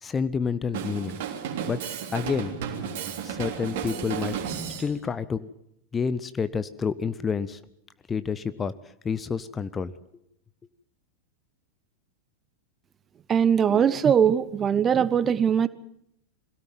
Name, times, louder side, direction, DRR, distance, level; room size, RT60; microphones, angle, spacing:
voice 1, 0.0-1.2 1.7-2.6 3.2-4.3 4.8-5.5 5.9-7.6 8.1-8.7 9.0-9.9, left 6 dB, 20° left, 15 dB, 0.8 m, -29 dB
Drum kit, 0.7-4.9, right 7 dB, 50° right, 3.3 m, -33 dB
voice 2, 13.3-15.7, right 8 dB, 25° right, 17 dB, 0.8 m, -21 dB
22.5 x 17.0 x 7.5 m, 0.76 s
figure-of-eight pair, 90°, 0 cm